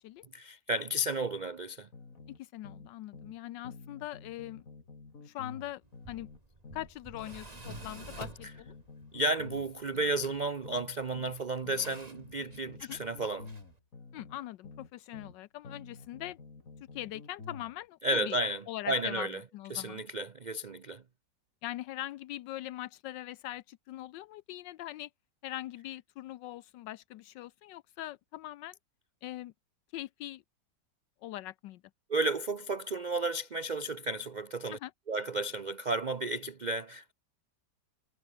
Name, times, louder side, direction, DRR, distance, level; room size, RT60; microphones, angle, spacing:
voice 1, 0.3-1.9 9.1-13.5 18.0-19.4 19.7-21.0 32.1-34.8 35.1-37.1, right 1 dB, 70° right, 0.4 m, -33 dB
sound 1, 1.9-3.4 3.6-7.4 7.6-11.4 11.6-15.4 15.6-17.8, left 4 dB, 50° left, 3.2 m, -50 dB
voice 2, 2.4-4.6 5.2-5.8 6.1-6.3 6.7-8.7 12.9-13.0 14.1-16.4 16.9-18.4 18.7-19.3 19.5-20.0 21.6-25.1 25.4-28.8 29.2-29.5 29.9-30.4 31.2-31.8 34.7-34.9, left 14 dB, 85° left, 1.3 m, -42 dB
Tools, 5.8-13.8, right 2 dB, 20° right, 2.8 m, -51 dB
omnidirectional pair, 1.9 m